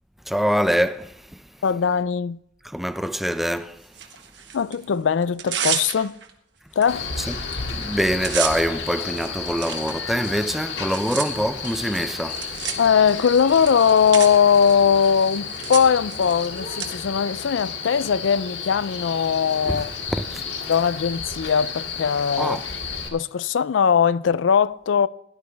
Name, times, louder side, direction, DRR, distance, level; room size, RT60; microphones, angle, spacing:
voice 1, 0.3-1.4 2.6-3.8 7.2-7.4 7.7-12.6 19.7-19.8 20.1-20.4 22.4-22.6, equal, ahead, 0.5 m, -24 dB
voice 2, 1.6-2.4 4.5-6.1 6.8-7.0 12.8-19.9 20.7-22.6 23.1-25.1, left 7 dB, 85° left, 0.4 m, -20 dB
Tearing, 3.9-4.8 5.2-6.3 6.8-6.9 7.2-7.5 7.8-16.9, right 9 dB, 70° right, 1.5 m, -32 dB
Male speech man speaking, 6.9-23.1, left 5 dB, 65° left, 2.1 m, -32 dB
16.5 x 11.5 x 3.4 m
head